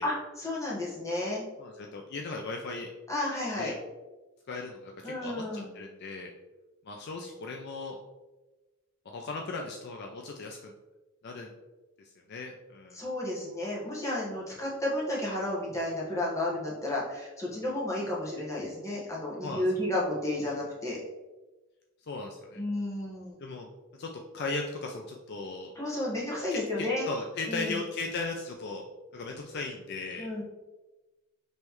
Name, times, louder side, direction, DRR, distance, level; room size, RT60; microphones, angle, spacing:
voice 1, 0.0-1.4 3.1-3.7 5.0-5.7 12.9-21.0 22.5-23.4 25.7-27.1 27.5-27.8 30.2-30.4, left 1 dB, 15° left, -5 dB, 1.2 m, -32 dB
voice 2, 1.6-2.9 3.6-3.7 4.5-6.3 6.9-8.0 9.1-10.7 11.2-11.5 12.3-13.0 19.4-19.6 22.1-22.6 23.4-23.7 24.0-25.7 26.5-28.8 29.1-30.3, left 3 dB, 50° left, 2 dB, 0.4 m, -37 dB
5.4 x 3.2 x 3.0 m, 1.1 s
head